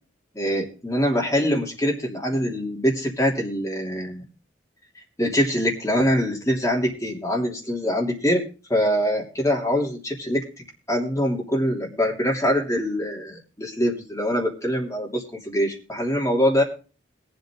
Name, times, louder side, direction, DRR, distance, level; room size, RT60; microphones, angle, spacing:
voice 1, 0.3-4.2 5.2-8.4 8.7-16.6, equal, 15° left, -1 dB, 3.0 m, -24 dB
21.5 x 8.1 x 3.7 m, 0.35 s
head